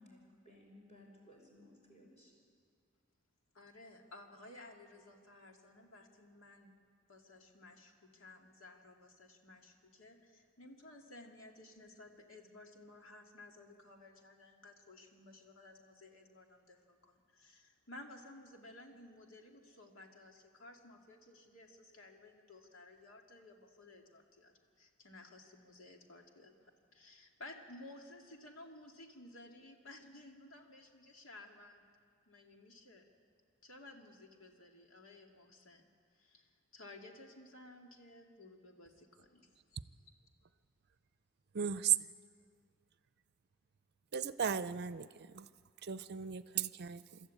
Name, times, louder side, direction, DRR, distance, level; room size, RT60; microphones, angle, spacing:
voice 1, 0.0-2.3, left 1 dB, 35° left, -1 dB, 5.5 m, -59 dB
voice 2, 3.5-6.7 7.1-31.8 32.3-33.0 33.6-39.8, left 2 dB, 80° left, 2 dB, 2.3 m, -56 dB
voice 3, 41.5-41.9 44.1-45.5 45.8-47.2, right 9 dB, 55° right, 14 dB, 0.6 m, -35 dB
26.5 x 13.0 x 8.5 m, 2.1 s
head